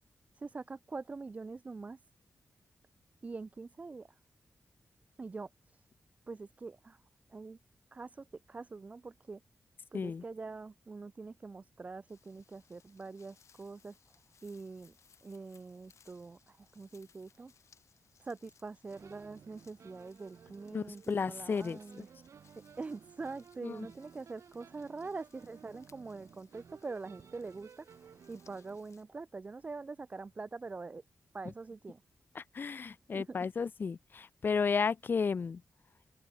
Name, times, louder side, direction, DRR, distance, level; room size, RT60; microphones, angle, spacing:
voice 1, 0.4-2.0 3.2-4.1 5.2-5.5 6.3-7.0 7.3-7.6 7.9-9.4 9.9-14.0 14.4-14.9 15.2-17.5 18.2-22.1 22.6-31.0 31.3-32.0 33.1-33.3, right 4 dB, 30° right, 0.5 m, -44 dB
sound 1, 12.1-29.0, left 7 dB, 80° left, 4.6 m, -68 dB
sound 2, 18.9-28.8, right 7 dB, 75° right, 2.3 m, -57 dB
voice 2, 20.7-22.0 23.6-23.8 32.3-35.6, left 5 dB, 45° left, 0.7 m, -33 dB
open air
wide cardioid pair, 155°, 5 cm